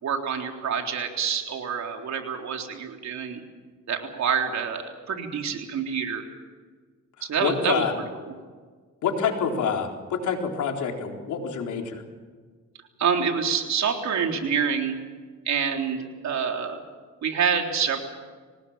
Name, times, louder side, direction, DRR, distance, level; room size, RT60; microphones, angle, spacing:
voice 1, 0.0-3.4 3.9-6.3 7.2-7.8 8.2-8.3 13.0-15.0 15.5-16.8 17.2-18.0, right 6 dB, 65° right, 3 dB, 3.7 m, -27 dB
voice 2, 7.4-7.9 9.0-12.0, left 6 dB, 75° left, 2 dB, 4.1 m, -27 dB
25.0 x 19.0 x 7.4 m, 1.5 s
cardioid pair, 90°, 30 cm